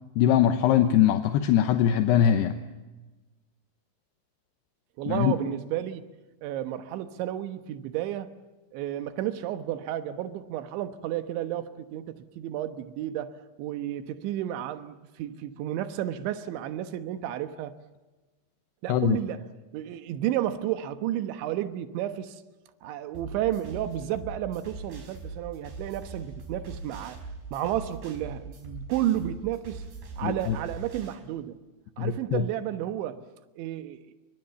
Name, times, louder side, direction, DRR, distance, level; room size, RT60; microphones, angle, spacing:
voice 1, 0.2-2.6 5.1-5.3 18.9-19.2 30.2-30.6 32.0-32.4, left 10 dB, 75° left, 2.9 m, -22 dB
voice 2, 5.0-6.1 6.4-8.3 8.7-13.3 13.6-17.7 18.8-19.5 19.7-22.4 22.8-27.2 27.5-29.8 30.2-31.6 32.0-33.2 33.6-34.1, right 12 dB, 90° right, 3.6 m, -32 dB
sound 1, 23.1-31.1, right 4 dB, 50° right, 6.2 m, -41 dB
27.5 x 24.0 x 7.0 m
omnidirectional pair, 5.1 m